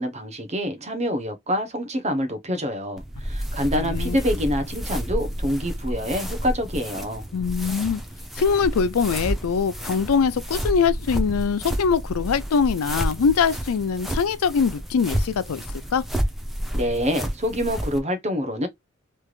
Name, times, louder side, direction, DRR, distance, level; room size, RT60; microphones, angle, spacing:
voice 1, 0.0-7.3 16.7-18.7, equal, 30° right, 0.9 m, -26 dB
sound 1, 3.0-18.0, equal, ahead, 0.7 m, -30 dB
voice 2, 3.7-4.2 7.3-8.0 8.4-15.6 15.9-16.0, left 6 dB, 80° left, 0.4 m, -22 dB
3.3 x 3.2 x 2.4 m
head